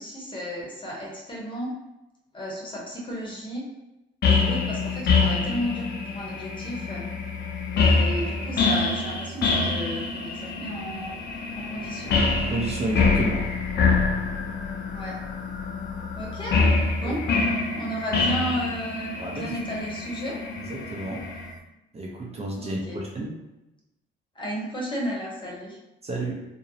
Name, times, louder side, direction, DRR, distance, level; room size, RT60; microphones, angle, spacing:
voice 1, 0.0-1.7 2.3-3.7 4.2-7.1 7.7-11.2 11.5-12.2 14.9-15.2 16.2-17.2 17.7-20.4 22.6-23.0 24.3-25.8, equal, 25° left, -3 dB, 0.8 m, -33 dB
sound 1, 4.2-21.5, left 4 dB, 55° left, 0.4 m, -25 dB
voice 2, 12.5-13.5 17.0-17.2 19.2-19.5 20.7-21.3 21.9-23.4 26.0-26.5, right 2 dB, 30° right, -2 dB, 0.5 m, -31 dB
2.6 x 2.0 x 2.6 m, 0.95 s
cardioid pair, 90°, 20 cm